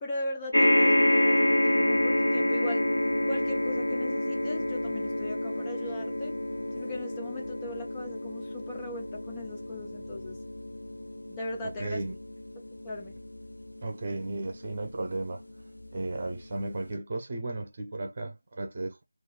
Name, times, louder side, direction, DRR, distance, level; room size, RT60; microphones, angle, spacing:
voice 1, 0.0-2.9 3.3-6.3 6.7-10.4 11.3-12.0 12.8-13.2, left 1 dB, 10° left, 0.5 m, -39 dB
sound 1, 0.5-15.1 15.8-15.9 16.2-16.3, left 1 dB, 75° left, 0.4 m, -28 dB
voice 2, 11.6-12.2 13.8-15.4 15.9-19.0, right 2 dB, 30° right, 0.7 m, -34 dB
2.6 x 2.3 x 3.8 m
figure-of-eight pair, 165°, 0 cm